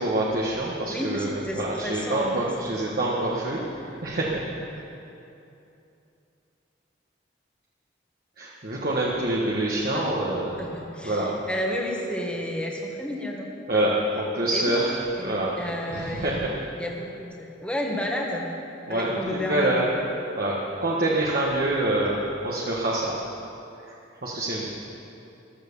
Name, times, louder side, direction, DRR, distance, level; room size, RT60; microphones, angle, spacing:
voice 1, 0.0-3.6 4.0-4.4 4.7-4.8 8.4-10.5 11.0-11.3 13.7-14.9 15.2-15.5 15.9-16.4 18.9-19.9 20.4-20.5 20.8-23.1 24.2-24.7, right 1 dB, 50° right, -4 dB, 1.7 m, -26 dB
voice 2, 0.9-2.7 10.6-13.5 14.5-14.7 15.2-16.4 16.8-18.5 18.9-19.9, left 1 dB, 5° left, -1 dB, 1.7 m, -31 dB
15.5 x 13.0 x 7.1 m, 2.8 s
head